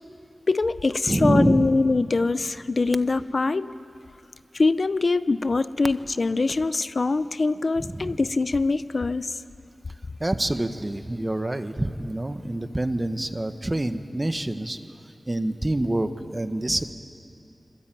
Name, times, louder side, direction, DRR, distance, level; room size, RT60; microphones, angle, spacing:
voice 1, 0.5-3.7 4.5-9.4, left 3 dB, 60° left, 14 dB, 0.6 m, -23 dB
voice 2, 1.1-1.7 7.8-8.2 10.2-14.8 15.3-16.9, right 1 dB, 30° right, 9 dB, 1.4 m, -26 dB
26.0 x 23.0 x 9.2 m, 2.6 s
wide cardioid pair, 60°, 0 cm